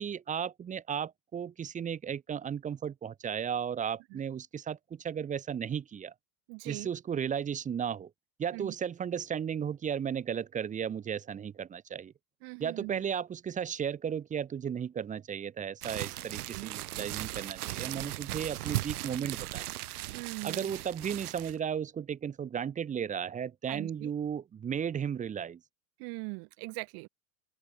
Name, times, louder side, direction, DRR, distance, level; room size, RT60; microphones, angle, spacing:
voice 1, 0.0-6.1 6.7-8.1 8.4-12.1 12.6-19.7 20.4-25.6, right 8 dB, 15° right, 0.8 m, -35 dB
voice 2, 6.5-6.9 8.5-8.7 12.4-13.0 16.5-16.7 20.1-20.7 23.7-24.1 26.0-27.1, right 33 dB, 55° right, 3.5 m, -41 dB
sound 1, 15.8-21.6, right 17 dB, 75° right, 1.4 m, -37 dB
open air
supercardioid pair, 125°, 45 cm